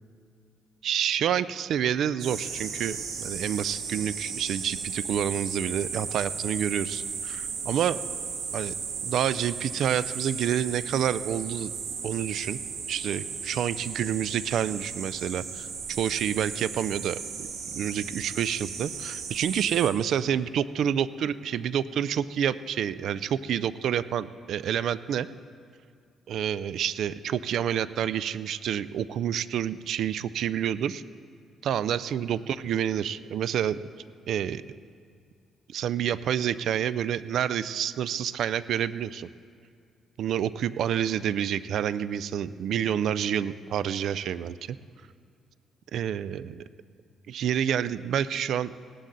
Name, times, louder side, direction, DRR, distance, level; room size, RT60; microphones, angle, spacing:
voice 1, 0.8-8.0 8.5-8.7 9.0-11.7 12.0-12.6 12.9-17.5 17.7-25.3 26.3-31.0 31.6-33.8 34.3-34.6 35.7-39.3 40.2-44.8 45.9-46.6 47.3-48.7, right 9 dB, 70° right, 16 dB, 0.4 m, -28 dB
sound 1, 2.2-19.9, right 5 dB, 85° right, 2.0 m, -35 dB
17.5 x 11.5 x 4.0 m, 2.3 s
cardioid pair, 90°, 0 cm